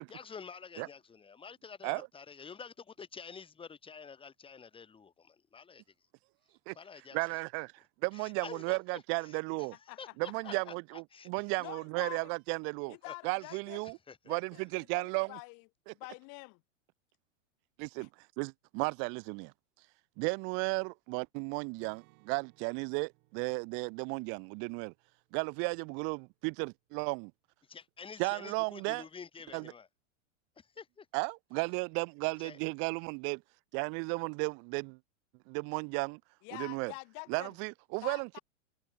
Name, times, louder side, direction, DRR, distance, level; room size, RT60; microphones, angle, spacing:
voice 1, 0.1-5.8 6.7-7.2 8.1-11.3 13.1-13.2 13.4-14.3 27.7-29.9 30.6-31.1 32.4-32.6, left 6 dB, 15° left, 1.6 m, -49 dB
voice 2, 7.1-9.8 10.2-13.0 13.2-14.0 14.3-15.3 17.8-18.1 18.4-19.5 20.2-24.9 25.3-27.3 28.2-29.0 29.5-29.7 31.1-33.4 33.7-35.0 35.5-36.2 36.5-36.9 37.3-38.4, right 35 dB, 35° right, 0.4 m, -34 dB
voice 3, 9.9-10.5 11.6-12.3 12.9-13.8 14.3-14.7 14.9-15.7 15.9-16.6 18.0-18.1 36.4-37.5 38.0-38.4, left 34 dB, 50° left, 3.4 m, -46 dB
Acoustic guitar, 21.8-27.7 28.0-28.2 28.6-29.1, right 37 dB, 50° right, 5.2 m, -69 dB
hypercardioid pair, 120°, 39 cm